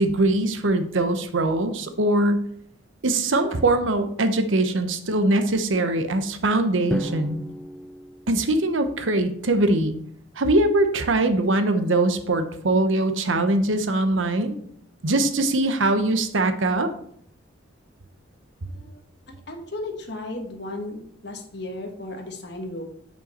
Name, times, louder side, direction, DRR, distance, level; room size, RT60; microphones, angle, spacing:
voice 1, 0.0-2.4 3.0-7.4 8.3-10.0 10.4-14.5 15.0-16.9, right 2 dB, 80° right, 9 dB, 0.8 m, -22 dB
Drum, 6.9-9.0, equal, ahead, 0.3 m, -34 dB
voice 2, 18.6-19.0 19.3-22.8, left 2 dB, 60° left, 3 dB, 1.3 m, -35 dB
7.4 x 5.6 x 4.3 m, 0.67 s
head